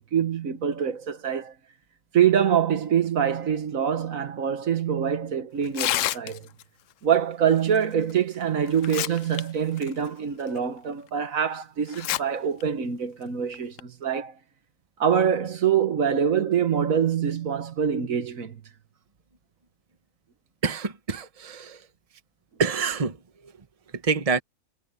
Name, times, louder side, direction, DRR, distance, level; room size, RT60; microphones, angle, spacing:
voice 1, 0.1-1.5 2.1-6.5 7.0-14.3 15.0-18.6, right 8 dB, 70° right, 1.6 m, -25 dB
Tearing, 5.6-6.6 8.1-8.2 8.7-9.4 9.8-9.9 10.6-10.7 11.9-12.2 12.6-12.7 13.5-13.8, left 13 dB, 70° left, 0.9 m, -28 dB
voice 2, 20.6-21.8 22.6-23.2 24.0-24.4, right 4 dB, 25° right, 1.2 m, -26 dB
omnidirectional pair, 1.5 m